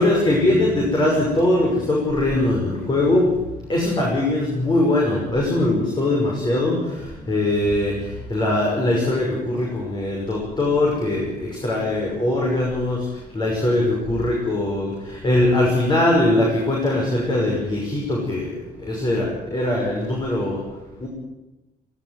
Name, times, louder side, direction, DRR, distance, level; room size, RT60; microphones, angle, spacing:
voice 1, 0.0-3.3 3.7-6.7 7.3-7.9 8.3-13.0 13.3-14.9 15.2-18.5 18.8-20.6 21.0-21.1, left 1 dB, 25° left, -2 dB, 6.1 m, -21 dB
18.5 x 17.0 x 9.5 m, 1.0 s
cardioid pair, 145°, 16 cm